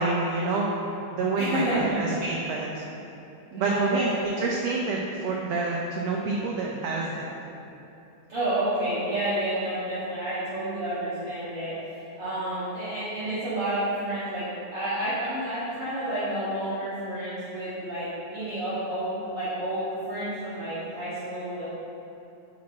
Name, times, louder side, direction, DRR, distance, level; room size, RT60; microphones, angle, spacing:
voice 1, 0.0-2.8 3.6-7.4, right 3 dB, 90° right, -2 dB, 1.4 m, -28 dB
voice 2, 1.4-2.0 3.5-4.6 7.4-7.5 8.3-21.7, right 1 dB, 50° right, -12 dB, 2.2 m, -30 dB
8.6 x 6.5 x 4.3 m, 2.8 s
omnidirectional pair, 3.8 m